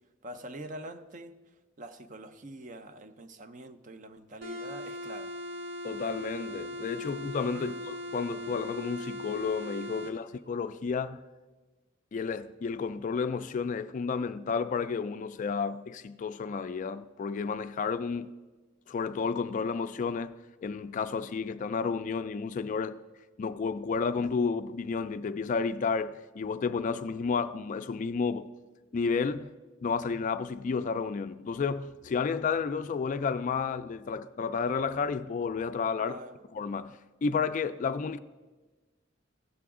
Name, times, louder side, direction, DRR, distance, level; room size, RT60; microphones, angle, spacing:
voice 1, 0.2-1.4 1.8-5.4 7.5-7.8 10.0-10.1 36.0-36.5, right 1 dB, 40° right, 0.5 m, -45 dB
sound 1, 4.4-10.2, left 1 dB, 60° right, 1.4 m, -39 dB
voice 2, 5.8-11.2 12.1-18.3 18.9-23.0 23.4-28.5 28.9-29.5 29.8-36.2 36.5-38.2, left 5 dB, 40° left, 0.3 m, -31 dB
16.0 x 6.9 x 3.6 m
head